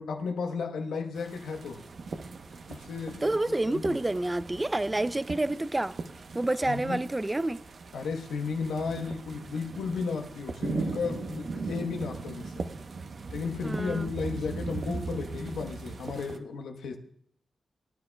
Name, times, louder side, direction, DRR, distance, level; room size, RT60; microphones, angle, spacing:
voice 1, 0.0-1.9 2.7-4.1 6.7-7.0 7.9-12.6 13.3-17.0, left 5 dB, 90° left, 0.9 m, -34 dB
sound 1, 1.1-16.4, right 4 dB, 65° right, 0.8 m, -39 dB
voice 2, 3.2-6.0 6.3-7.6 13.6-14.1, right 2 dB, 25° right, 0.4 m, -28 dB
19.5 x 9.9 x 2.2 m
cardioid pair, 45°, 0 cm